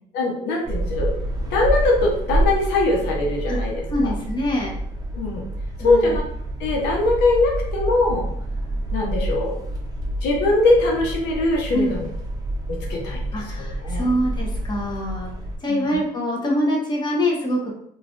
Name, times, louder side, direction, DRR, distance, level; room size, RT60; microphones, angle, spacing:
voice 1, 0.1-1.1 1.5-4.1 5.1-5.4 5.8-6.2 6.6-8.3 8.9-9.5 10.2-12.1 12.7-13.3 13.6-14.1 15.7-15.9, left 2 dB, 90° left, -1 dB, 0.8 m, -21 dB
sound 1, 0.6-15.6, right 1 dB, 20° right, 0.6 m, -28 dB
voice 2, 3.9-4.7 5.8-6.1 11.7-11.9 13.3-15.3 15.6-17.7, equal, 25° left, -2 dB, 0.8 m, -24 dB
3.2 x 2.4 x 2.5 m, 0.69 s
cardioid pair, 110°, 17 cm